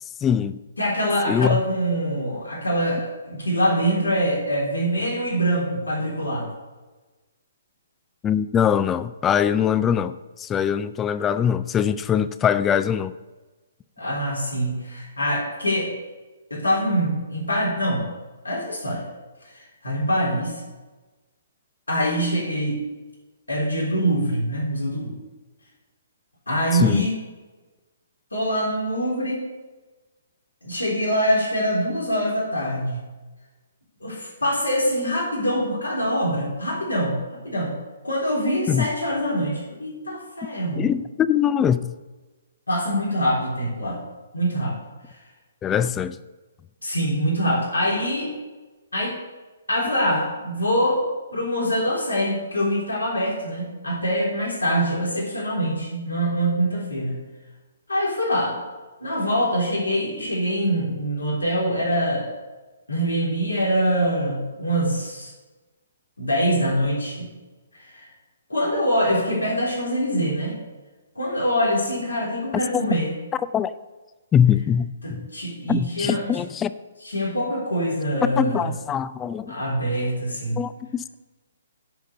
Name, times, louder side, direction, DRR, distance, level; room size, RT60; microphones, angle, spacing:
voice 1, 0.2-0.6 1.3-1.6 8.2-13.1 26.7-27.1 38.7-38.9 40.8-41.9 45.6-46.2 72.7-72.8 73.5-73.7 74.3-75.3 75.7-76.7 78.4-79.5 80.6-81.0, left 8 dB, 15° left, 14 dB, 0.4 m, -22 dB
voice 2, 0.8-6.5 14.0-15.9 16.5-18.1 18.4-19.0 19.5-20.6 21.9-22.8 23.5-25.1 26.5-27.2 28.3-29.4 30.6-33.1 34.0-37.2 37.4-37.7 38.0-40.9 42.7-44.0 44.3-44.8 46.8-48.3 48.9-49.1 49.7-51.0 51.3-57.2 57.9-58.6 59.0-62.3 62.9-65.3 66.2-67.3 67.9-68.1 68.5-70.6 71.2-73.1 75.0-76.4 77.0-78.7 79.5-80.6, equal, 85° left, -3 dB, 3.7 m, -24 dB
10.5 x 5.2 x 7.0 m, 1.2 s
figure-of-eight pair, 130°, 0 cm